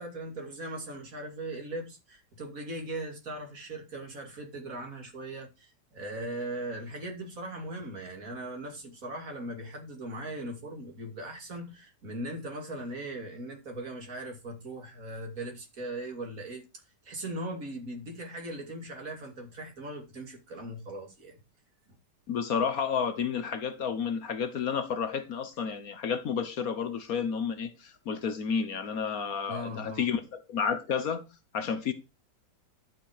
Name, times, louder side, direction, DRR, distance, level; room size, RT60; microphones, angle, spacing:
voice 1, 0.0-16.6 17.0-21.4 29.5-30.0, right 1 dB, 55° right, 2.9 m, -39 dB
voice 2, 22.3-31.2 31.5-31.9, left 6 dB, 60° left, 1.4 m, -31 dB
11.5 x 6.1 x 4.9 m
omnidirectional pair, 1.8 m